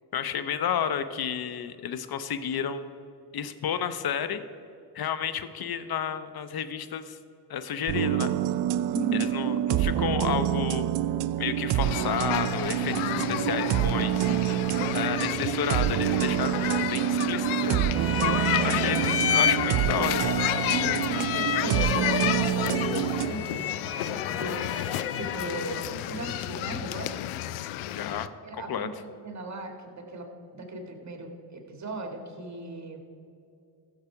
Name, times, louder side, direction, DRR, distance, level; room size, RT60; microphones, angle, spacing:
voice 1, 0.1-2.9 3.3-4.4 4.9-7.2 7.5-8.3 9.1-10.9 11.4-12.9 13.3-14.3 14.9-17.8 18.6-19.0 19.3-20.5 27.9-28.9, left 8 dB, 50° left, 12 dB, 0.9 m, -31 dB
sound 1, 7.9-23.3, right 12 dB, 60° right, 0.5 m, -27 dB
voice 2, 8.9-9.3 12.8-15.0 18.5-19.0 20.7-27.2 28.4-33.0, right 2 dB, 35° right, 3 dB, 2.1 m, -38 dB
sound 2, 11.8-28.3, left 14 dB, 75° left, 0.6 m, -32 dB
sound 3, 17.9-26.0, left 7 dB, 30° left, 0.5 m, -31 dB
14.5 x 6.6 x 4.9 m, 2.6 s
supercardioid pair, 60°, 49 cm